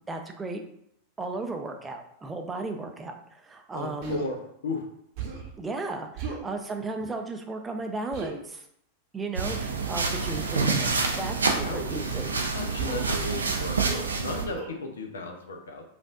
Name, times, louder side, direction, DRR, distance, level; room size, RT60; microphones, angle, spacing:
voice 1, 0.1-0.6 1.2-4.2 5.6-8.6 9.1-10.9 11.2-12.3, right 3 dB, 15° right, 4 dB, 0.5 m, -35 dB
voice 2, 3.7-4.9 11.6-15.8, left 3 dB, 65° left, 4 dB, 0.6 m, -35 dB
Human voice, 4.0-4.3 5.2-5.5 6.2-6.5 8.1-8.3 9.5-9.9 11.1-11.3 12.7-13.1 13.8-14.1 14.4-14.7, right 5 dB, 45° right, 0.9 m, -36 dB
sound 1, 9.4-14.5, right 4 dB, 75° right, 0.5 m, -27 dB
5.0 x 2.5 x 2.4 m, 0.72 s
figure-of-eight pair, 90°, 0 cm